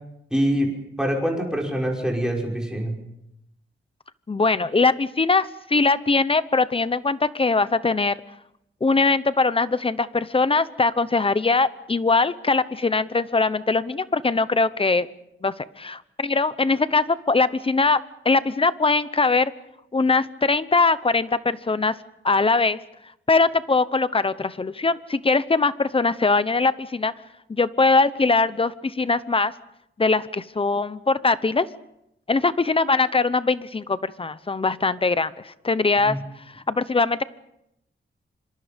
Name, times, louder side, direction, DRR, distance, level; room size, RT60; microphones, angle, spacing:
voice 1, 0.3-0.7 1.0-2.9 36.0-36.2, equal, 5° right, -1 dB, 5.8 m, -24 dB
voice 2, 4.3-8.2 8.8-15.1 15.4-18.0 18.2-19.5 19.9-22.0 22.2-22.8 23.3-27.1 27.5-29.5 30.0-31.7 32.3-36.2 36.7-37.2, left 3 dB, 25° left, 15 dB, 0.8 m, -21 dB
26.0 x 26.0 x 5.2 m, 0.82 s
wide cardioid pair, 160°, 21 cm